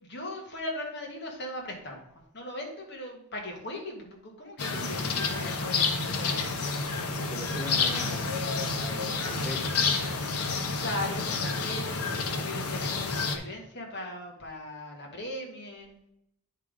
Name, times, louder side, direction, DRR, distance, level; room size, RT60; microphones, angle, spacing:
voice 1, 0.0-2.0 2.3-6.4 10.8-16.0, left 1 dB, 50° left, 1 dB, 1.6 m, -39 dB
sound 1, 4.6-13.4, left 4 dB, 90° left, 0.9 m, -29 dB
voice 2, 4.7-5.3 7.1-8.4 8.8-10.3, equal, ahead, 0 dB, 0.6 m, -40 dB
9.3 x 3.7 x 5.1 m, 0.80 s
head